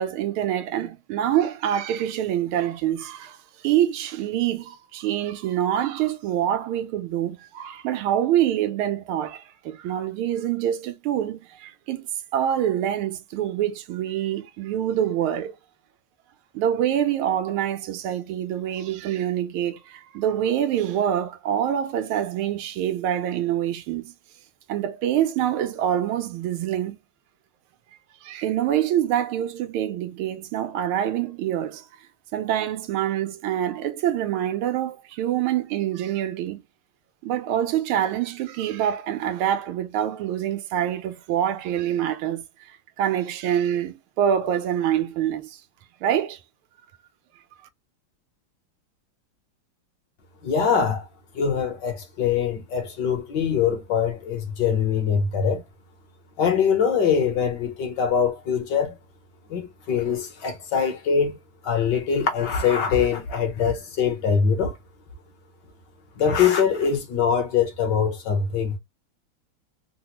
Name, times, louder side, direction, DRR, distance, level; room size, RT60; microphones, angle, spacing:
voice 1, 0.0-3.4 3.6-12.1 12.3-15.5 16.5-24.1 24.7-27.0 28.2-31.9 32.3-36.6 37.2-42.4 43.0-45.6 46.0-46.4, right 10 dB, 85° right, 1.5 m, -25 dB
voice 2, 50.4-51.1 51.3-55.6 56.4-58.9 59.5-61.3 61.6-64.7 66.2-68.8, left 7 dB, 60° left, 1.5 m, -23 dB
3.8 x 2.1 x 2.9 m
omnidirectional pair, 2.3 m